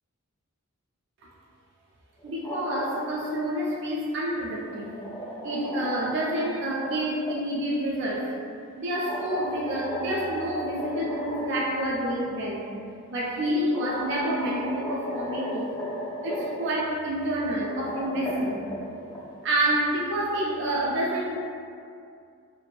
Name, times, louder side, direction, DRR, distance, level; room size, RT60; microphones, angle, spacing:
sound 1, 2.2-3.3 4.5-7.4 8.9-11.8 12.1-12.2 13.2-13.3 13.7-16.7 17.5-19.2, left 1 dB, 15° left, 0.4 m, -35 dB
voice 1, 2.2-4.9 5.4-8.3 8.8-12.7 13.1-15.7 16.2-18.7 19.4-21.4, right 1 dB, 50° right, -4 dB, 0.4 m, -28 dB
2.6 x 2.4 x 2.2 m, 2.4 s
head